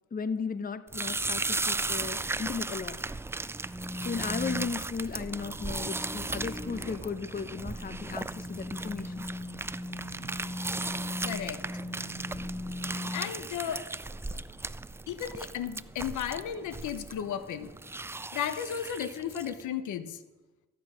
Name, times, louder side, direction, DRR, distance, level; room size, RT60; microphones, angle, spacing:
voice 1, 0.1-3.0 4.0-9.2, left 5 dB, 30° left, 13 dB, 0.8 m, -35 dB
sound 1, 0.9-19.6, right 2 dB, 10° right, 0.3 m, -36 dB
sound 2, 3.6-13.2, left 1 dB, 10° left, 3.4 m, -40 dB
voice 2, 11.2-11.6 13.1-13.9 14.3-14.4 15.1-17.7 18.3-20.2, left 9 dB, 75° left, 12 dB, 1.0 m, -34 dB
14.5 x 9.2 x 6.3 m, 1.1 s
cardioid pair, 90°, 30 cm